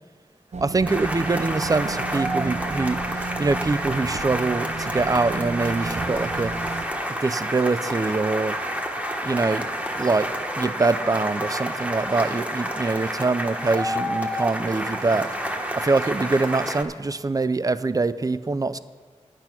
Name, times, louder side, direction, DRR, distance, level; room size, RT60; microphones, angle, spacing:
sound 1, 0.5-6.9, right 4 dB, 70° right, 0.6 m, -33 dB
voice 1, 0.6-6.6 7.2-8.6 9.2-9.7 9.9-10.3 10.6-15.3 15.7-18.8, right 3 dB, 30° right, 14 dB, 0.4 m, -24 dB
sound 2, 0.9-16.8, equal, 10° right, 1.2 m, -29 dB
9.7 x 9.0 x 5.9 m, 1.4 s
wide cardioid pair, 80°, 12 cm